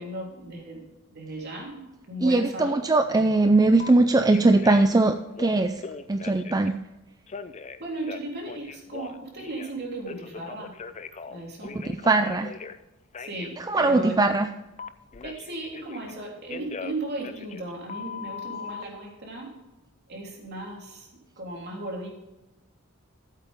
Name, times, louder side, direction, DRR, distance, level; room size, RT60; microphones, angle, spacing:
voice 1, 0.0-2.8 7.8-10.7 11.3-11.8 13.2-14.3 15.2-19.5 20.1-21.1 21.4-22.1, right 1 dB, 50° right, -1 dB, 3.4 m, -36 dB
voice 2, 2.2-5.8 6.1-6.8 11.7-12.5 13.6-14.5, right 2 dB, 20° right, 8 dB, 0.4 m, -21 dB
Telephone, 3.8-3.9 4.3-5.0 5.3-6.7 7.3-9.7 10.1-12.8 13.1-13.5 14.8-16.1 16.5-18.8, left 5 dB, 35° left, 0.5 m, -40 dB
14.5 x 8.2 x 3.6 m, 1.1 s
head